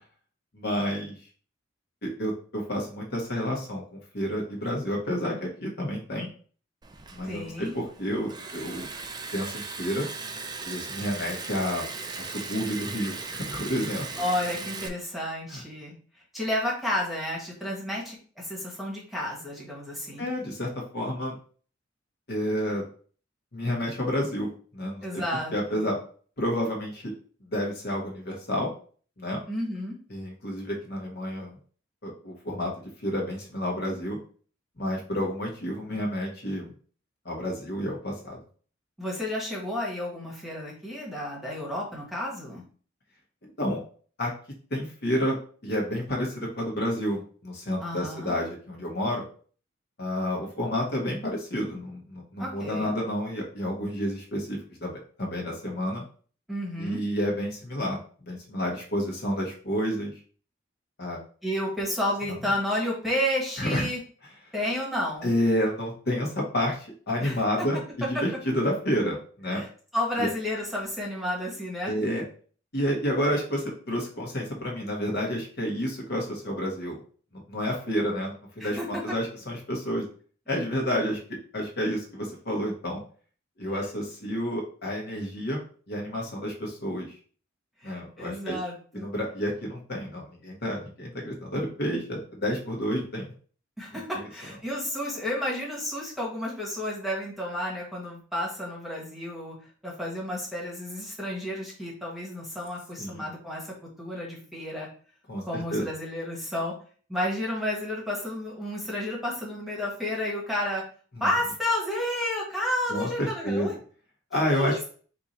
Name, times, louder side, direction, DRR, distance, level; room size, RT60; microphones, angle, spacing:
voice 1, 0.5-1.1 2.0-6.3 7.1-8.9 9.3-10.1 10.6-11.8 12.2-14.0 15.5-15.6 20.2-21.3 22.3-22.8 23.5-25.2 25.5-26.0 26.4-27.1 27.4-28.7 29.2-29.4 30.1-31.5 32.0-32.7 33.0-34.2 34.8-36.7 37.2-38.4 43.4-43.8 44.2-44.3 44.7-45.4 45.6-49.2 50.0-54.9 55.2-56.0 56.8-60.1 61.0-61.2 63.6-63.9 65.2-67.8 68.1-69.6 70.2-70.3 71.8-72.2 72.7-77.0 77.3-80.1 80.5-81.2 81.5-83.0 83.6-87.1 87.8-88.6 88.9-93.3 103.0-103.3 105.3-105.9 111.2-111.3 112.9-113.7 114.3-114.9, equal, 55° left, -1 dB, 1.3 m, -30 dB
Liquid, 6.8-14.9, right 4 dB, 20° right, 0.4 m, -38 dB
voice 2, 7.2-7.8 14.2-15.9 16.3-20.2 25.0-26.0 29.5-30.0 39.0-42.6 47.8-48.4 52.4-52.9 56.5-57.0 61.4-64.0 64.5-65.3 67.2-67.4 69.5-69.7 69.9-72.0 78.6-79.0 87.8-89.1 93.8-99.5 99.8-104.9 105.4-106.7 107.1-110.8 111.2-113.7 114.3-114.9, left 1 dB, ahead, -4 dB, 1.4 m, -31 dB
4.5 x 2.7 x 4.2 m, 0.43 s
head